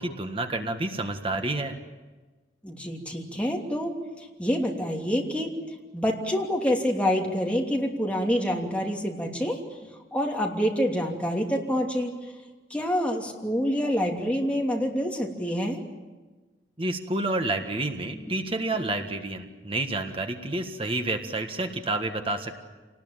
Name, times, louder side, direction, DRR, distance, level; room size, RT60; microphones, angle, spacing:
voice 1, 0.0-1.8 16.8-22.6, right 2 dB, 30° right, 6 dB, 1.7 m, -29 dB
voice 2, 2.6-5.5 5.9-9.6 10.1-12.1 12.7-15.8 18.3-18.4, equal, 5° left, 0 dB, 2.9 m, -27 dB
27.5 x 19.5 x 9.0 m, 1.3 s
head